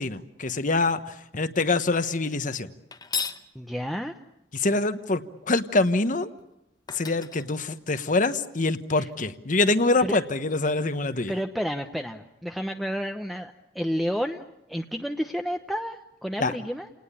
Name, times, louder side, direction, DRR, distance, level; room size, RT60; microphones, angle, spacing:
voice 1, 0.0-2.7 4.5-6.3 6.9-11.3 16.4-16.5, left 3 dB, 50° left, 10 dB, 1.2 m, -25 dB
sound 1, 2.9-3.5 6.4-6.5 6.9-8.3, left 6 dB, 25° left, 1.1 m, -34 dB
voice 2, 3.5-4.1 9.0-9.1 10.0-10.2 11.3-16.9, equal, ahead, 5 dB, 0.9 m, -31 dB
29.5 x 19.0 x 8.5 m, 0.87 s
head